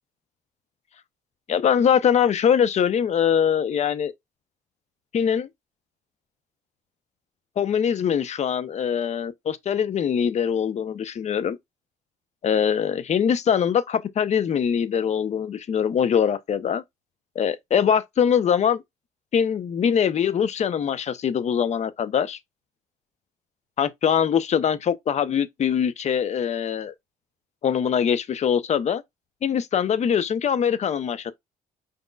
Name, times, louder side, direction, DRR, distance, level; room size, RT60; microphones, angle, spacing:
voice 1, 1.5-4.1 5.1-5.5 7.6-11.6 12.4-16.8 17.3-18.8 19.3-22.4 23.8-26.9 27.6-29.0 29.4-31.3, left 8 dB, 45° left, 0.8 m, -22 dB
5.1 x 4.0 x 2.3 m
cardioid pair, 95°, 16 cm